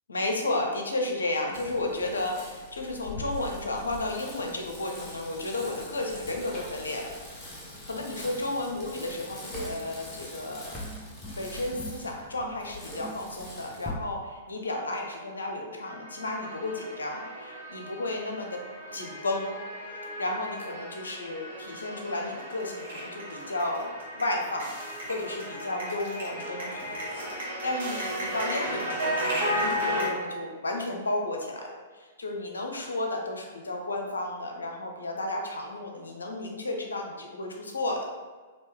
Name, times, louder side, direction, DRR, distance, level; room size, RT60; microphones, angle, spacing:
voice 1, 0.1-7.1 7.8-10.8 11.4-18.6 18.9-19.6 20.2-38.0, left 2 dB, 75° left, 1 dB, 0.7 m, -33 dB
Bicycle, 1.5-13.9, left 1 dB, 20° left, 1.2 m, -42 dB
sound 1, 15.8-30.1, equal, 65° right, 1.4 m, -34 dB
4.5 x 2.9 x 3.4 m, 1.4 s
figure-of-eight pair, 105°, 0 cm